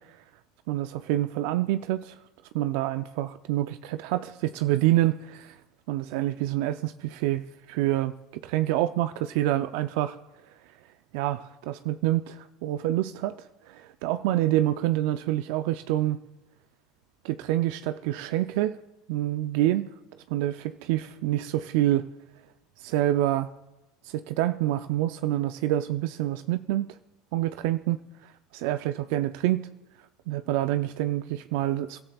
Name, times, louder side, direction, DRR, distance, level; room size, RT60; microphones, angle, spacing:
voice 1, 0.7-2.2 2.5-5.6 5.9-7.4 7.7-8.1 8.4-10.2 11.1-16.2 17.2-18.8 19.1-19.9 20.3-22.1 22.8-23.5 24.0-26.9 27.3-28.0 28.5-29.7 30.3-32.0, right 14 dB, 65° right, 11 dB, 0.4 m, -27 dB
29.5 x 13.0 x 2.4 m, 0.99 s
hypercardioid pair, 90°, 0 cm